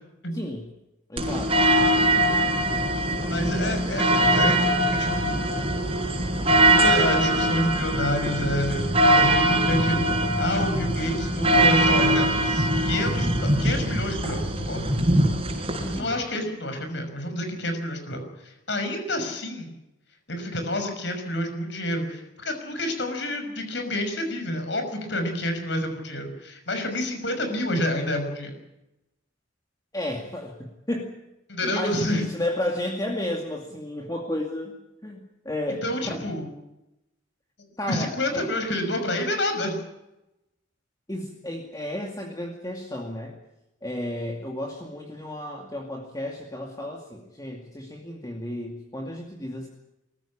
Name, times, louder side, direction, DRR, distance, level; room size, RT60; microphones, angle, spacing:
voice 1, 0.3-0.7 1.1-1.7 3.8-4.0 15.8-16.2 29.9-31.1 31.6-34.8 35.0-36.2 37.8-38.5 41.1-43.4 43.8-49.7, left 1 dB, 20° left, 1 dB, 2.3 m, -32 dB
sound 1, 1.2-16.0, right 1 dB, 30° right, 4.7 m, -22 dB
voice 2, 3.3-5.5 6.7-10.1 10.4-14.8 15.9-19.7 20.3-28.5 31.5-32.3 35.8-36.5 37.9-39.8, left 1 dB, 65° left, 6 dB, 6.0 m, -28 dB
24.0 x 15.0 x 8.7 m, 0.91 s
head